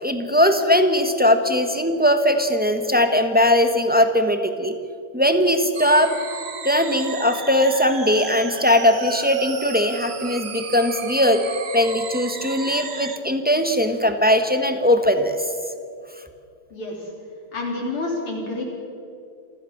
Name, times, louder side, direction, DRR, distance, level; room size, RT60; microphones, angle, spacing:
voice 1, 0.0-4.7 5.1-6.1 6.6-11.4 11.7-15.5, left 1 dB, 5° right, 6 dB, 1.0 m, -19 dB
sound 1, 5.7-13.2, right 6 dB, 40° right, 0.9 m, -34 dB
voice 2, 17.5-18.6, left 2 dB, 80° left, -2 dB, 4.5 m, -28 dB
27.5 x 15.0 x 7.3 m, 2.4 s
omnidirectional pair, 2.3 m